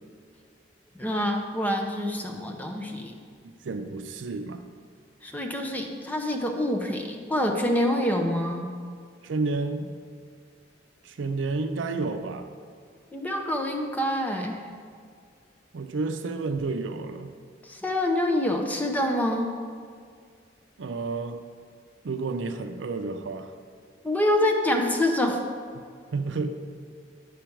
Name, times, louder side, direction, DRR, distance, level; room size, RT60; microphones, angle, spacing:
voice 1, 1.0-3.1 5.2-8.7 13.1-14.7 17.6-19.5 24.0-25.4, left 1 dB, 10° left, 2 dB, 0.6 m, -26 dB
voice 2, 3.6-4.6 9.2-9.9 11.0-12.5 15.7-17.3 20.8-21.4 22.0-23.5 26.1-26.5, right 3 dB, 80° right, 8 dB, 0.5 m, -30 dB
8.4 x 5.0 x 4.5 m, 2.1 s
head